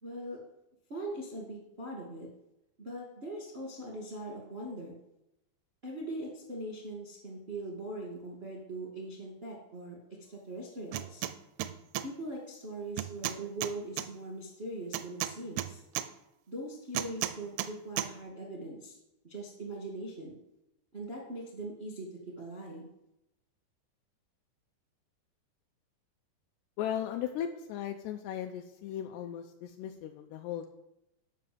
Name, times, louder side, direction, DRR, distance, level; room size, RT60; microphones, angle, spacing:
voice 1, 0.0-0.4 0.9-2.3 2.8-4.9 5.8-10.0 10.3-11.2 12.0-15.8 16.5-19.0 19.2-20.4 20.9-22.9, right 1 dB, 55° right, -2 dB, 0.6 m, -41 dB
sound 1, 10.9-11.3 11.6-12.1 13.0-14.1 14.9-16.1 16.9-17.7 18.0-18.1, right 13 dB, 85° right, 2.3 m, -33 dB
voice 2, 26.8-30.7, left 10 dB, 85° left, 5 dB, 2.5 m, -37 dB
9.2 x 5.7 x 7.7 m, 0.86 s
omnidirectional pair, 5.1 m